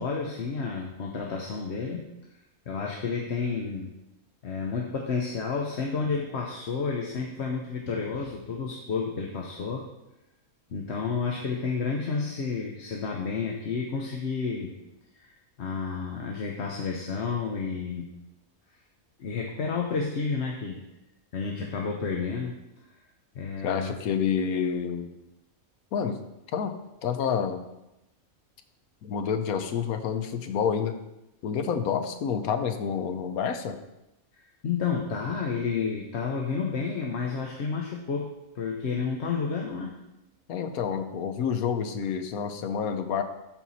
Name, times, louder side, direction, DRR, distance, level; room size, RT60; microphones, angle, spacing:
voice 1, 0.0-2.0 2.7-3.9 4.4-9.9 10.7-14.7 15.2-18.1 19.2-20.8 21.3-22.5 23.3-24.0 34.3-38.3 38.5-39.9, left 5 dB, 55° left, 0 dB, 1.0 m, -31 dB
voice 2, 23.6-25.2 25.9-26.2 26.5-26.7 27.0-27.6 29.0-31.0 31.4-33.8 40.5-43.2, left 7 dB, 85° left, 8 dB, 1.2 m, -28 dB
12.5 x 4.6 x 4.2 m, 0.92 s
omnidirectional pair, 1.5 m